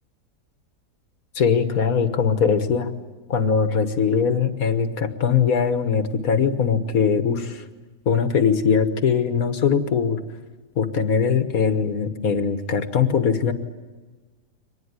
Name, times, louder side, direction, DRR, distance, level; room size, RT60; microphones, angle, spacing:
voice 1, 1.4-2.9 3.3-7.6 8.1-10.2 10.8-13.5, left 6 dB, 60° left, 9 dB, 1.7 m, -21 dB
24.0 x 19.5 x 9.6 m, 1.3 s
omnidirectional pair, 1.7 m